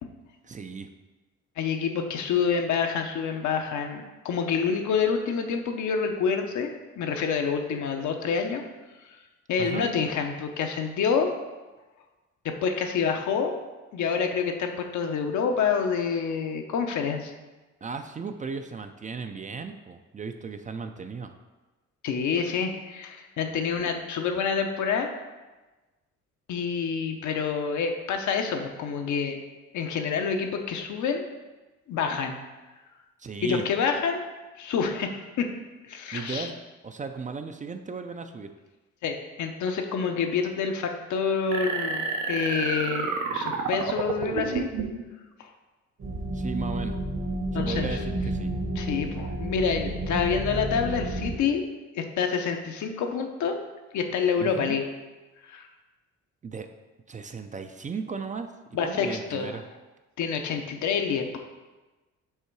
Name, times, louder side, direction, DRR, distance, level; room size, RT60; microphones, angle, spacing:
voice 1, 0.4-0.9 9.6-9.9 17.8-21.3 33.2-33.7 36.1-36.6 36.8-38.5 43.3-43.5 46.3-47.0 47.5-48.5 54.4-54.8 56.4-56.7 57.1-58.5 58.8-59.6, right 5 dB, 25° right, 7 dB, 0.4 m, -36 dB
voice 2, 1.6-6.7 7.0-8.6 9.5-11.3 12.4-13.6 13.9-17.3 22.0-25.1 26.5-29.4 29.7-31.2 31.9-32.3 33.4-34.2 34.6-35.5 35.9-36.5 39.0-44.7 45.4-45.5 47.5-48.0 48.8-51.7 51.9-53.6 53.9-54.8 55.5-55.7 58.7-59.6 60.2-61.4, left 6 dB, 70° left, 4 dB, 0.8 m, -27 dB
sound 1, 41.5-45.0, right 5 dB, 80° right, 0.8 m, -30 dB
sound 2, 46.0-51.4, right 1 dB, 45° right, 1.0 m, -31 dB
5.6 x 3.7 x 4.6 m, 1.2 s
cardioid pair, 90°, 30 cm